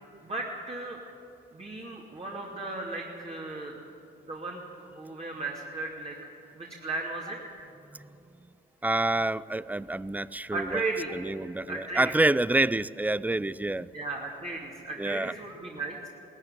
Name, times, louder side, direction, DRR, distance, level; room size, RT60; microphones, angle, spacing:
voice 1, 0.2-1.0 1.5-3.8 4.3-7.6 10.5-11.1 11.7-12.1 13.9-16.1, right 3 dB, 30° right, -2 dB, 2.8 m, -36 dB
voice 2, 8.8-10.8 11.1-13.9 15.0-15.3, right 2 dB, 10° right, 19 dB, 0.4 m, -27 dB
18.5 x 14.5 x 9.9 m, 2.7 s
cardioid pair, 90°, 20 cm